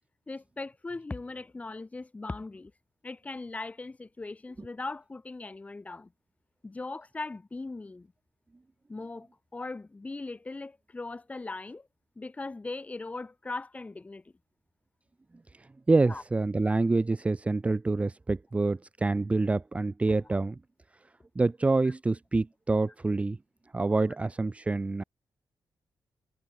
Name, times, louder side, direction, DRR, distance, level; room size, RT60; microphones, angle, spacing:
voice 1, 0.3-2.7 3.0-6.1 6.6-8.1 8.9-11.9 12.2-14.3 16.1-16.2, left 3 dB, 20° left, 2.3 m, -39 dB
voice 2, 15.9-20.6 21.4-23.4 23.7-25.0, right 3 dB, 15° right, 0.7 m, -26 dB
wide cardioid pair, 155°, 7 cm